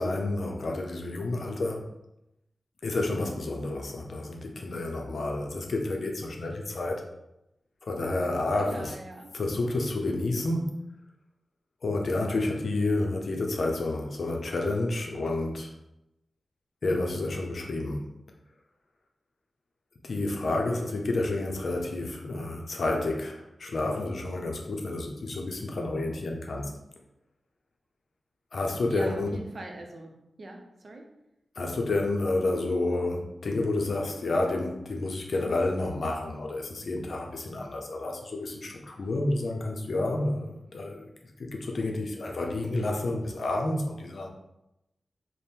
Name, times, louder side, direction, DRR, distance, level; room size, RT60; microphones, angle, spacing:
voice 1, 0.0-1.8 2.8-7.0 7.8-8.9 9.3-10.8 11.8-15.7 16.8-18.1 20.0-26.7 28.5-29.3 31.6-41.0 41.4-44.3, left 2 dB, 65° left, 1 dB, 0.5 m, -30 dB
voice 2, 8.6-9.3 28.9-31.1, right 2 dB, 60° right, 2 dB, 0.6 m, -42 dB
3.4 x 2.1 x 4.3 m, 0.88 s
wide cardioid pair, 80°, 0 cm